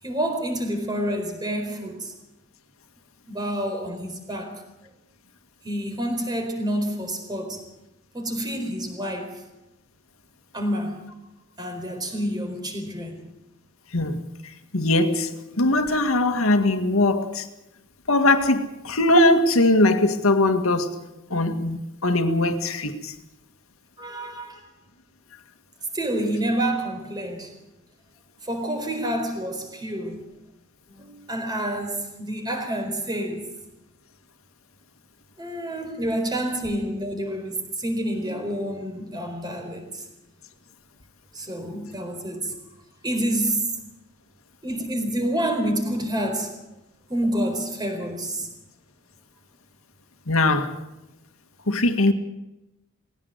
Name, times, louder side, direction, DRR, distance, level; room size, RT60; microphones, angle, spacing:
voice 1, 0.0-2.1 3.3-4.6 5.6-7.6 8.1-9.4 10.5-11.0 11.6-13.2 24.0-24.6 25.9-27.5 28.4-30.3 30.9-33.4 35.4-40.0 41.3-42.5 43.0-43.6 44.6-46.5 47.1-48.5, right 1 dB, 20° right, 4.4 m, -28 dB
voice 2, 14.7-17.5 18.1-21.0 21.3-23.1 50.3-50.7 51.7-52.1, left 2 dB, 80° left, 2.0 m, -20 dB
20.0 x 17.0 x 8.1 m
head